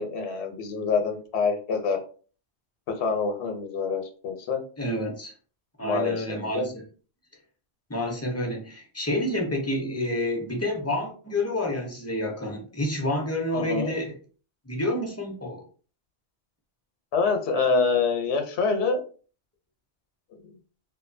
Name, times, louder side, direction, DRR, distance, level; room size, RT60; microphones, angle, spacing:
voice 1, 0.0-2.0 2.9-4.6 5.8-6.7 13.5-14.0 17.1-19.0 20.3-20.6, left 4 dB, 90° left, 5 dB, 0.9 m, -26 dB
voice 2, 4.8-5.3 5.8-6.8 7.9-14.1 14.7-15.6, left 1 dB, 20° left, -1 dB, 0.4 m, -29 dB
2.6 x 2.2 x 2.5 m, 0.39 s
omnidirectional pair, 1.1 m